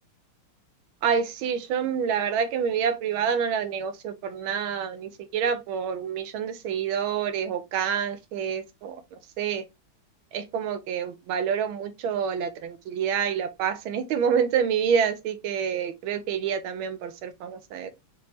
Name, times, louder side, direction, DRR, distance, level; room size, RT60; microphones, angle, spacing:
voice 1, 1.0-9.0 9.4-9.6 10.3-17.9, right 7 dB, 85° right, 1.5 m, -27 dB
5.3 x 3.0 x 2.9 m
omnidirectional pair, 2.2 m